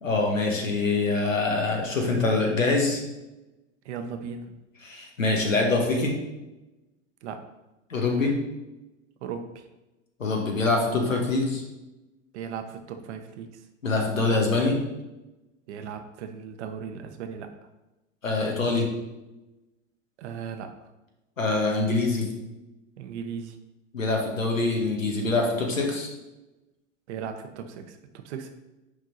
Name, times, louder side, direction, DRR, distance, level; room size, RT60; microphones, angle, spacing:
voice 1, 0.0-3.0 4.8-6.2 7.9-8.4 10.2-11.6 13.8-14.8 18.2-18.9 21.4-22.3 23.9-26.1, left 3 dB, 85° left, 0 dB, 1.7 m, -24 dB
voice 2, 3.8-4.5 7.2-7.4 9.2-9.6 12.3-13.6 15.7-17.5 20.2-20.7 23.0-23.6 27.1-28.5, right 7 dB, 60° right, 6 dB, 1.1 m, -37 dB
9.8 x 3.7 x 4.1 m, 1.0 s
figure-of-eight pair, 90°, 38 cm